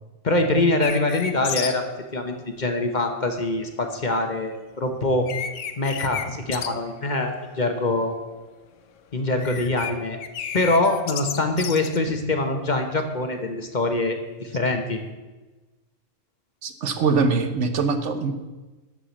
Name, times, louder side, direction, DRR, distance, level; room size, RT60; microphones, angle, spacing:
voice 1, 0.2-5.3 5.8-8.1 9.1-10.2 10.5-15.0, left 2 dB, 40° left, 5 dB, 1.1 m, -24 dB
sound 1, 0.8-1.7 4.8-4.9 5.3-6.3 6.5-6.7 7.0-7.5 7.9-8.1 9.2-9.9 10.2-12.0, left 8 dB, 75° left, 1.1 m, -32 dB
voice 2, 16.6-18.3, right 4 dB, 70° right, 8 dB, 1.2 m, -23 dB
12.5 x 4.9 x 7.1 m, 1.2 s
omnidirectional pair, 1.3 m